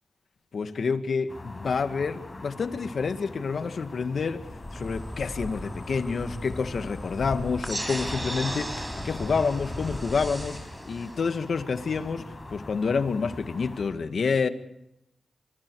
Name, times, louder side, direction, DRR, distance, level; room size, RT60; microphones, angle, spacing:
voice 1, 0.5-4.5 4.7-14.5, left 5 dB, 70° left, 1.9 m, -28 dB
sound 1, 1.3-13.9, left 2 dB, 35° left, 7.4 m, -44 dB
Insect, 4.4-10.5, left 1 dB, 20° left, 4.6 m, -38 dB
sound 2, 7.6-12.6, right 1 dB, 25° right, 6.8 m, -37 dB
26.0 x 26.0 x 4.8 m
cardioid pair, 45°, 0 cm